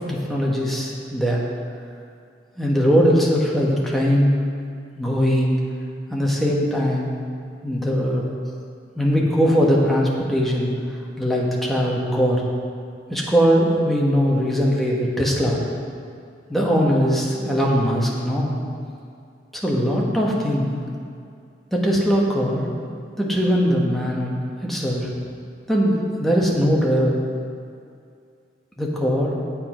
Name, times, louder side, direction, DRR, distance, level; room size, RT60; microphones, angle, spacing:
voice 1, 0.0-1.4 2.6-4.3 5.0-5.6 6.1-7.1 7.6-8.2 9.0-10.7 11.2-12.4 13.1-15.6 16.5-18.6 19.5-20.7 21.7-22.7 23.2-25.1 25.7-27.2 28.8-29.3, equal, ahead, -4 dB, 1.3 m, -20 dB
8.7 x 7.9 x 5.1 m, 2.3 s
head